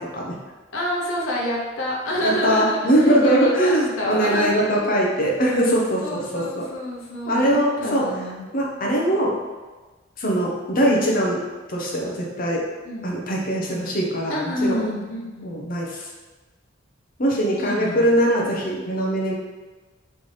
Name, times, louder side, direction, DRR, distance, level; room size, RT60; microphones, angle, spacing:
voice 1, 0.7-4.9 6.0-8.4 12.8-13.1 14.3-15.5 17.6-18.1, left 1 dB, 85° left, -3 dB, 0.8 m, -28 dB
voice 2, 2.2-6.7 7.3-8.1 8.5-9.3 10.2-11.4 11.7-12.6 13.0-14.9 15.4-16.1 17.2-19.3, right 1 dB, 45° left, -2 dB, 0.8 m, -21 dB
4.1 x 3.3 x 3.2 m, 1.3 s
head